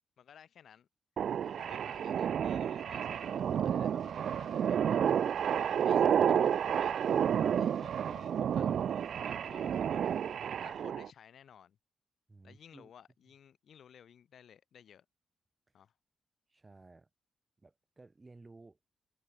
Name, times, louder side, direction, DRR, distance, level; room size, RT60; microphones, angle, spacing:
voice 1, 0.2-0.9 1.4-5.0 5.6-6.1 6.8-6.9 7.6-10.1 10.6-11.8 12.4-15.0 15.7-15.9, left 8 dB, 70° left, 1.7 m, -57 dB
sound 1, 1.2-11.1, right 8 dB, 70° right, 0.3 m, -30 dB
voice 2, 12.3-12.9 16.5-17.1 17.6-18.9, right 3 dB, 25° right, 7.8 m, -56 dB
cardioid pair, 85°, 0 cm